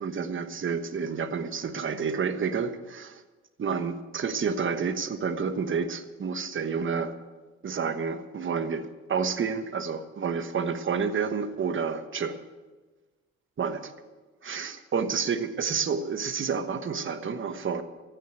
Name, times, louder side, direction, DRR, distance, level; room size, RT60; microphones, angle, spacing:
voice 1, 0.0-3.2 3.6-7.1 7.6-12.4 13.6-13.9 14.4-17.8, right 6 dB, 40° right, 10 dB, 1.2 m, -29 dB
15.0 x 6.6 x 9.3 m, 1.3 s
cardioid pair, 90°, 30 cm